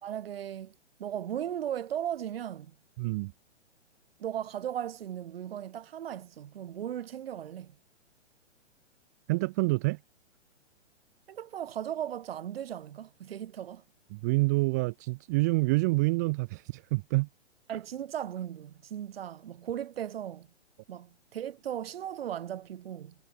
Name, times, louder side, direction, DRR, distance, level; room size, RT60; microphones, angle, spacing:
voice 1, 0.0-0.7 1.0-2.7 4.2-7.8 11.3-13.8 17.7-20.5 20.9-23.1, right 10 dB, 55° right, 1.3 m, -37 dB
voice 2, 3.0-3.3 9.3-10.0 14.1-17.3, right 24 dB, 15° right, 0.4 m, -27 dB
figure-of-eight pair, 120°, 35 cm